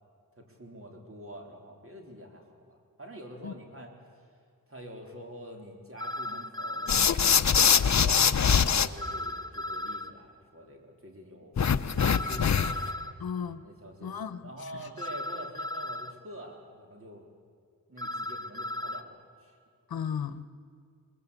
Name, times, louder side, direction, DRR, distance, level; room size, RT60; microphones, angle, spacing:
voice 1, 0.4-3.9 4.7-11.6 12.0-12.7 13.6-17.3 17.9-19.6, equal, 40° right, 2 dB, 4.0 m, -46 dB
sound 1, 6.0-7.1 9.0-10.1 12.0-13.1 15.0-16.1 18.0-19.0, left 1 dB, 10° left, 1.1 m, -36 dB
sound 2, 6.9-8.9 11.6-12.9, left 7 dB, 50° left, 0.8 m, -23 dB
voice 2, 13.2-13.6 14.0-14.5 14.8-14.9 19.9-20.6, left 7 dB, 80° left, 12 dB, 1.0 m, -35 dB
23.5 x 21.5 x 8.4 m, 2.2 s
wide cardioid pair, 90°, 35 cm